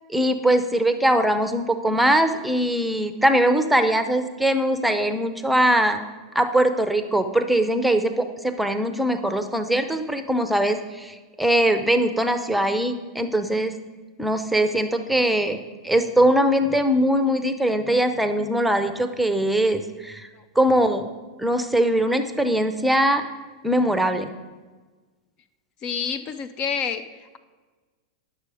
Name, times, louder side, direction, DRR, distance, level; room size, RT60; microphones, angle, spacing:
voice 1, 0.1-6.0 6.3-13.7 14.2-15.6 15.8-20.3 20.5-21.1 21.4-23.2 23.6-24.3, right 1 dB, 5° right, 8 dB, 0.7 m, -21 dB
voice 2, 25.8-27.4, left 6 dB, 40° left, 10 dB, 0.6 m, -28 dB
10.5 x 6.7 x 4.9 m, 1.3 s
hypercardioid pair, 105°, 2 cm